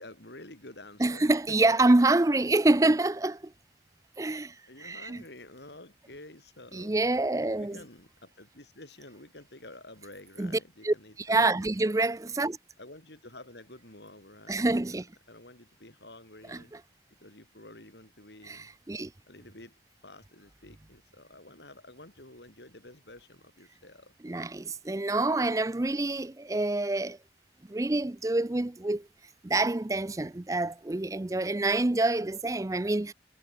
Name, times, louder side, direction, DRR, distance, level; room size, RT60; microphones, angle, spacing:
voice 1, 0.0-1.6 4.7-7.0 7.4-11.9 12.8-16.7 17.2-18.7 19.3-19.8 20.0-24.1, left 2 dB, 70° left, 5.9 m, -50 dB
voice 2, 1.0-3.5 4.2-5.2 6.7-7.8 10.4-10.5 10.8-12.6 14.5-15.1 16.5-16.6 18.5-19.1 24.2-27.2 27.7-29.1 29.4-33.1, right 2 dB, 20° right, 0.4 m, -27 dB
head